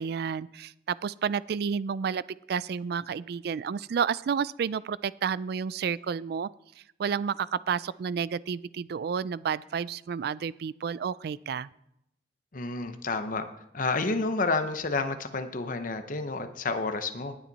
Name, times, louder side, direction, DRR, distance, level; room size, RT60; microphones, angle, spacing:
voice 1, 0.0-2.2 2.5-6.5 7.0-11.7, right 6 dB, 65° right, 20 dB, 0.3 m, -30 dB
voice 2, 12.5-13.5 13.7-17.4, left 3 dB, 50° left, 8 dB, 0.8 m, -30 dB
19.0 x 7.4 x 4.1 m, 0.80 s
head